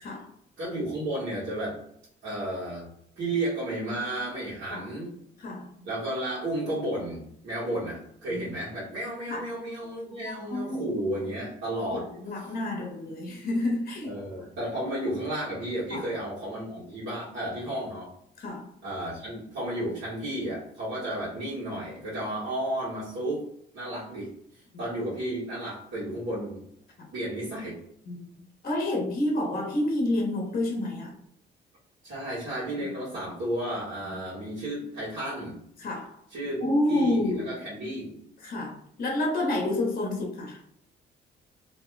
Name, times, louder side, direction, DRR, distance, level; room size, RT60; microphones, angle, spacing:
voice 1, 0.6-1.8 2.2-2.9 3.2-5.1 5.8-12.0 14.0-18.1 18.8-23.4 23.7-24.3 24.8-26.6 27.1-27.8 32.0-35.6 36.3-38.2, right 1 dB, 70° right, -10 dB, 1.4 m, -32 dB
voice 2, 10.2-10.9 11.2-11.3 11.9-14.1 15.9-16.1 18.4-18.7 24.7-24.8 28.1-28.2 28.6-31.1 35.8-36.1 36.6-37.5 38.4-40.6, left 1 dB, 45° left, 0 dB, 1.0 m, -29 dB
2.8 x 2.2 x 3.2 m, 0.70 s
cardioid pair, 90°, 20 cm